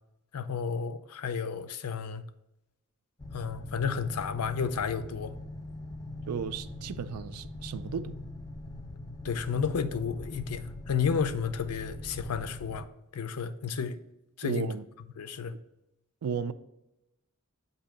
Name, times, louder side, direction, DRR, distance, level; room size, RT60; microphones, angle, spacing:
voice 1, 0.3-2.2 3.3-5.3 9.2-12.9 13.1-14.0 14.4-14.7 15.2-15.5, left 6 dB, 80° left, 0.5 m, -32 dB
sound 1, 3.2-12.9, left 2 dB, 15° left, 0.5 m, -42 dB
voice 2, 6.3-8.2 14.4-14.8 16.2-16.5, right 6 dB, 80° right, 0.4 m, -34 dB
7.6 x 2.7 x 5.0 m
head